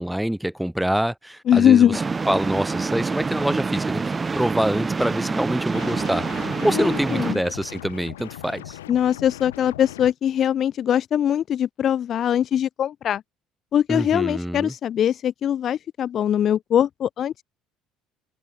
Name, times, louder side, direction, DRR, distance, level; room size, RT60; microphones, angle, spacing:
voice 1, 0.0-8.8 13.9-14.7, right 1 dB, 5° right, 5.0 m, -25 dB
voice 2, 1.5-2.0 6.7-7.4 8.9-13.2 13.7-17.4, left 10 dB, 45° left, 2.0 m, -21 dB
sound 1, 1.9-7.3, right 4 dB, 25° right, 4.5 m, -27 dB
sound 2, 5.7-10.1, left 14 dB, 75° left, 7.4 m, -39 dB
figure-of-eight pair, 55°, 0 cm